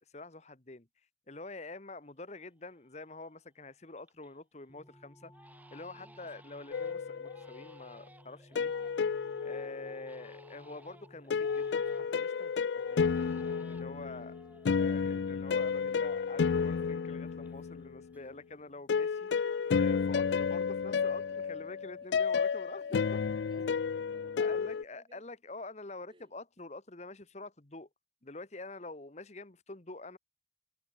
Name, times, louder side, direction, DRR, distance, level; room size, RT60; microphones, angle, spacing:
voice 1, 0.1-0.9 1.3-5.3 5.7-8.7 9.4-13.1 13.7-14.3 14.8-19.5 19.7-23.0 24.4-27.9 28.2-30.2, left 2 dB, 40° left, 1.4 m, -46 dB
Crying sobbing, 2.2-2.3 2.7-3.2 3.6-4.4 4.7-4.9 5.3-12.3 12.7-16.1 16.3-17.8 18.1-18.7, right 1 dB, 10° right, 5.3 m, -60 dB
sound 1, 4.7-12.1, equal, 15° left, 5.9 m, -58 dB
voice 2, 5.9-6.3 8.5-9.2 14.0-14.6 22.0-22.2 22.8-23.2 23.5-25.2 26.1-26.4, right 1 dB, 30° right, 3.4 m, -63 dB
sound 2, 6.7-7.7 8.6-10.4 11.3-18.0 18.9-24.8, left 6 dB, 80° left, 0.4 m, -31 dB
head